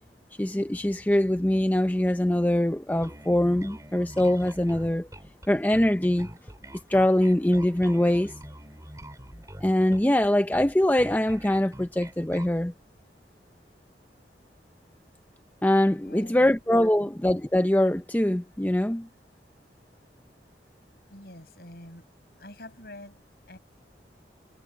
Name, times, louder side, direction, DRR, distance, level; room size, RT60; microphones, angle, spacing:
voice 1, 0.4-5.1 5.5-6.3 6.9-8.3 9.6-12.7 15.6-19.1, left 1 dB, 10° left, 0.5 m, -23 dB
Bass guitar, 3.0-12.6, right 1 dB, 20° right, 3.3 m, -45 dB
voice 2, 16.0-16.6 17.0-17.1 21.1-22.1 22.4-23.6, left 1 dB, 60° left, 5.7 m, -46 dB
head